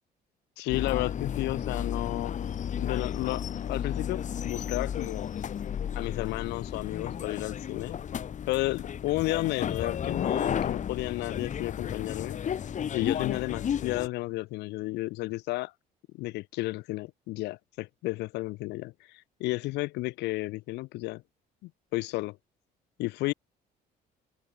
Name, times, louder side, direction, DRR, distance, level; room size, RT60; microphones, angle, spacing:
voice 1, 0.6-2.3 2.8-5.3 5.9-8.0 8.5-12.4 12.9-15.7 16.1-21.2 21.6-22.4 23.0-23.3, left 20 dB, 90° left, 1.3 m, -32 dB
sound 1, 0.7-14.1, left 8 dB, 45° left, 3.4 m, -33 dB
open air
cardioid pair, 110°, 17 cm